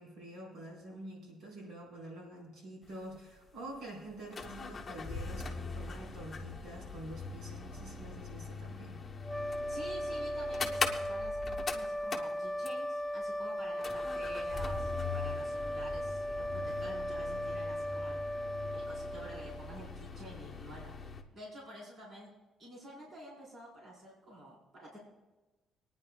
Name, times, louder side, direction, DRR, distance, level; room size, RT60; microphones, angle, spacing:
voice 1, 0.0-9.0, right 1 dB, 70° right, -2 dB, 4.7 m, -47 dB
sound 1, 2.8-2.9 3.1-3.2 4.1-13.0 13.8-21.2, left 4 dB, 30° left, 0.9 m, -41 dB
sound 2, 9.2-19.8, equal, 5° right, 0.5 m, -37 dB
voice 2, 9.7-18.2 18.7-20.9 21.3-22.3 22.6-25.0, right 1 dB, 45° right, -5 dB, 4.4 m, -49 dB
26.0 x 9.8 x 2.3 m, 1.1 s
cardioid pair, 130°, 0 cm